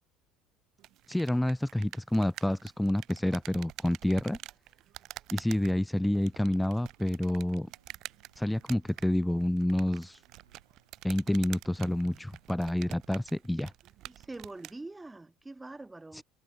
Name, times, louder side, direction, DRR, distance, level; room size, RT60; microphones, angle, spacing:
sound 1, 0.8-14.8, right 15 dB, 55° right, 1.2 m, -48 dB
voice 1, 1.1-4.4 5.3-7.7 8.4-10.2 11.0-13.7 16.1-16.2, left 1 dB, 5° left, 0.3 m, -28 dB
sound 2, 6.2-13.3, right 9 dB, 80° right, 4.8 m, -68 dB
voice 2, 14.0-16.2, right 2 dB, 15° right, 1.6 m, -44 dB
figure-of-eight pair, 60°, 0 cm